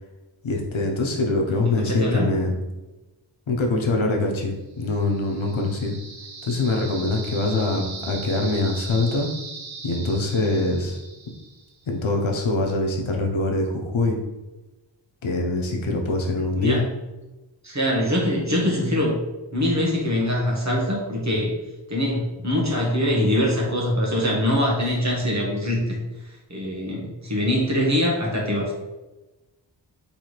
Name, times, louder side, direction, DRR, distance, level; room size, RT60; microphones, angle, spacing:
voice 1, 0.4-2.6 3.5-6.0 6.4-9.3 9.8-11.0 11.9-14.2 15.2-16.8, left 2 dB, 85° left, 1 dB, 0.8 m, -24 dB
voice 2, 1.5-2.3 7.7-7.9 16.5-16.8 17.6-19.2 19.5-21.5 21.9-26.0 26.5-28.7, left 1 dB, 35° right, -2 dB, 1.2 m, -23 dB
sound 1, 4.9-11.8, right 4 dB, 85° right, 0.9 m, -39 dB
4.1 x 3.3 x 3.2 m, 1.1 s
wide cardioid pair, 65°, 46 cm